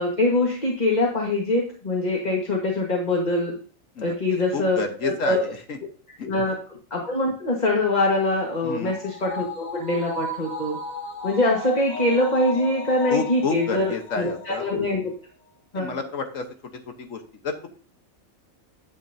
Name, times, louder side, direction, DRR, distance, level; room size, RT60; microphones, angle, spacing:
voice 1, 0.0-3.5 4.0-5.4 6.2-6.5 6.9-10.8 11.2-15.1 15.7-15.9, left 2 dB, 30° left, -1 dB, 1.5 m, -23 dB
voice 2, 4.0-5.8 6.2-6.5 8.6-8.9 13.1-14.7 15.7-16.5 16.9-17.7, left 4 dB, 65° left, 5 dB, 1.4 m, -30 dB
sound 1, 8.1-14.7 15.1-15.2, left 2 dB, 90° left, 3.6 m, -36 dB
10.5 x 7.9 x 2.7 m, 0.40 s
omnidirectional pair, 1.5 m